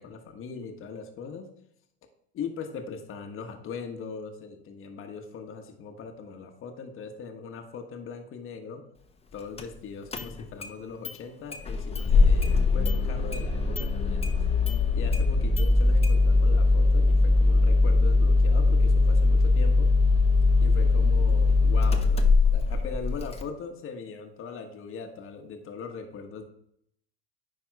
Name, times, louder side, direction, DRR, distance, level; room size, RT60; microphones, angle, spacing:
voice 1, 0.0-1.5 2.3-8.9 9.3-14.2 14.9-19.9 20.6-26.4, left 5 dB, 40° left, 4 dB, 1.3 m, -40 dB
Engine starting, 9.6-9.7 10.1-10.7 11.0-11.1 11.5-23.4, left 3 dB, 20° left, 0.9 m, -21 dB
9.9 x 3.5 x 4.6 m, 0.70 s
hypercardioid pair, 90°, 31 cm